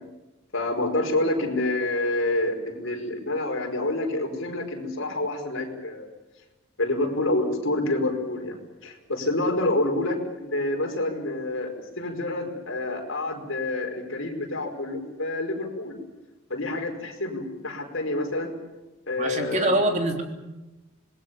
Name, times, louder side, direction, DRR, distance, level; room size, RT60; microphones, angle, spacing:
voice 1, 0.5-6.1 6.8-15.9 16.5-18.5 19.1-19.7, left 2 dB, 65° left, 2 dB, 5.1 m, -28 dB
voice 2, 19.2-20.2, right 1 dB, 35° right, 3 dB, 3.4 m, -24 dB
26.5 x 21.0 x 7.1 m, 1.1 s
head